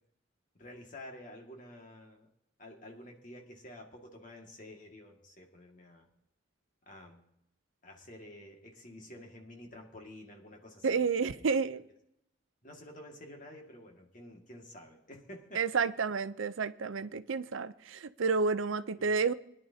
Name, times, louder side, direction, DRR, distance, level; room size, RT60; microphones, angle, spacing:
voice 1, 0.5-2.3 2.6-6.1 6.9-7.2 7.8-11.6 12.6-15.6 19.0-19.1, left 1 dB, 40° left, 2.0 m, -50 dB
voice 2, 10.8-11.8 15.5-19.3, right 5 dB, 75° right, 0.6 m, -30 dB
21.5 x 11.0 x 2.8 m
head